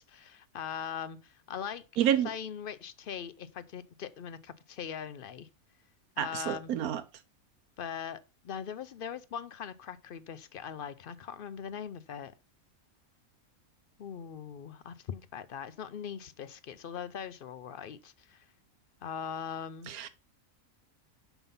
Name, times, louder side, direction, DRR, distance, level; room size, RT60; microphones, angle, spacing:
voice 1, 0.0-1.8 2.2-5.5 6.2-6.7 7.8-12.3 14.0-18.5 19.0-19.9, left 8 dB, 60° left, 0.5 m, -41 dB
voice 2, 2.0-2.3 6.2-7.0 19.9-20.1, right 10 dB, 85° right, 1.3 m, -28 dB
7.0 x 5.5 x 5.4 m
omnidirectional pair, 1.5 m